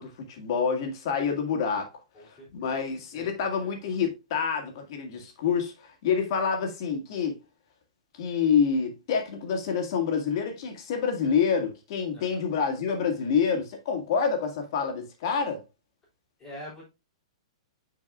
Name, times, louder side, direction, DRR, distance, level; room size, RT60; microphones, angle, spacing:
voice 1, 0.0-1.9 2.2-7.4 8.2-15.6, left 6 dB, 45° left, 1.9 m, -27 dB
voice 2, 2.1-2.7 3.1-3.3 12.1-12.4 16.4-16.9, equal, 10° left, 3.4 m, -44 dB
9.3 x 4.7 x 2.4 m
hypercardioid pair, 165°, 3 cm